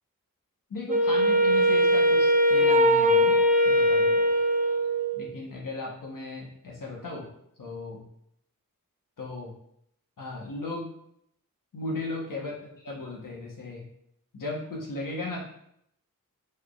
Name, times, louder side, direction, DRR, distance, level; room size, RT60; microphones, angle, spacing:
voice 1, 0.7-3.4 3.6-4.2 5.1-7.3 7.6-8.0 9.2-9.5 10.2-10.8 11.7-13.8 14.3-15.4, left 2 dB, 70° left, -2 dB, 1.0 m, -36 dB
Wind instrument woodwind instrument, 0.9-5.3, equal, 25° right, 0.5 m, -21 dB
4.4 x 3.3 x 2.3 m, 0.73 s
wide cardioid pair, 60°, 33 cm